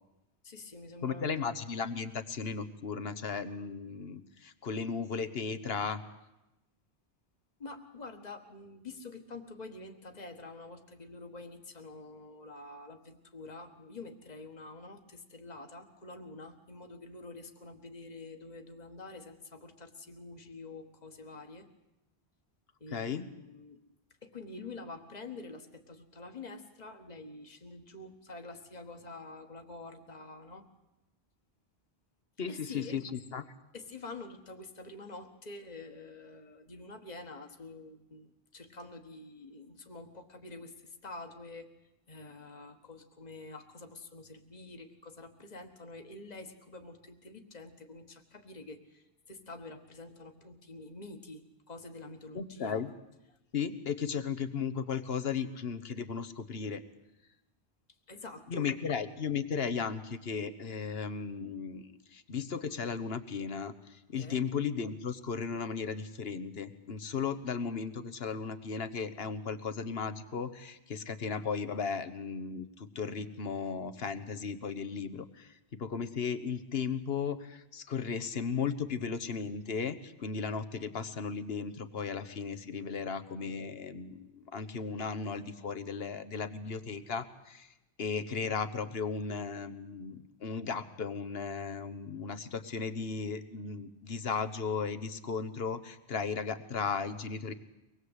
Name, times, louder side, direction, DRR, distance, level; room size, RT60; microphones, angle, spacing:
voice 1, 0.4-1.6 7.6-21.7 22.8-23.8 24.2-30.7 32.5-33.0 33.7-41.7 42.1-52.8 58.1-58.7 64.2-64.4, left 3 dB, 40° left, 5 dB, 1.7 m, -47 dB
voice 2, 1.0-6.0 22.9-23.3 32.4-33.4 52.3-52.9 53.5-56.8 58.5-87.7 88.0-97.5, left 5 dB, 65° left, 12 dB, 1.4 m, -36 dB
24.5 x 20.0 x 8.2 m, 0.95 s
omnidirectional pair, 1.1 m